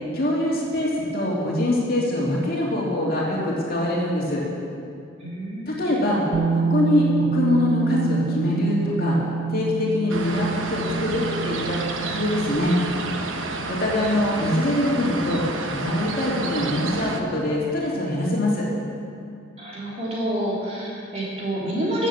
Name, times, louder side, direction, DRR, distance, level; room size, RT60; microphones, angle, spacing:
voice 1, 0.1-4.4 5.7-6.2 6.5-9.2 9.5-12.8 13.7-18.7, left 1 dB, 45° left, -4 dB, 2.6 m, -23 dB
voice 2, 5.2-5.8 13.9-14.1 19.6-22.1, right 1 dB, 30° right, -6 dB, 3.0 m, -28 dB
Bass guitar, 6.3-12.6, right 5 dB, 55° right, 0.4 m, -26 dB
sound 1, 10.1-17.2, right 3 dB, 75° right, 1.0 m, -30 dB
14.0 x 7.5 x 7.3 m, 2.4 s
head